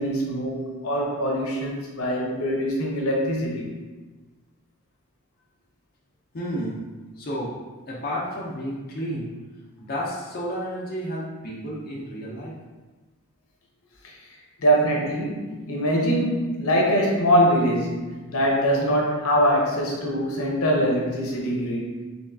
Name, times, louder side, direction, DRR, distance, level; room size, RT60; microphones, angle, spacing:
voice 1, 0.0-3.7 14.0-22.0, equal, 80° left, -1 dB, 0.8 m, -23 dB
voice 2, 6.3-6.8 7.2-7.5 7.9-9.3 9.8-12.6, equal, 45° left, -5 dB, 0.5 m, -31 dB
4.4 x 3.0 x 2.7 m, 1.3 s
head